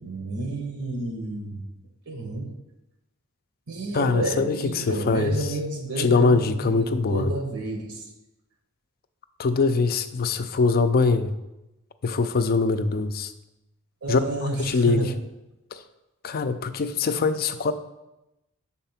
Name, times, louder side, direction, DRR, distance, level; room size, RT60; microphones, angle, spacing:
voice 1, 0.0-1.6 2.1-2.5 3.7-6.8 7.1-8.1 14.0-15.2, right 2 dB, 75° right, 3 dB, 1.1 m, -30 dB
voice 2, 3.9-5.4 6.0-7.3 9.4-11.3 12.0-13.3 14.1-15.1 15.7-15.8 16.2-17.7, left 4 dB, 45° left, 10 dB, 0.4 m, -23 dB
6.8 x 4.2 x 5.8 m, 0.94 s
head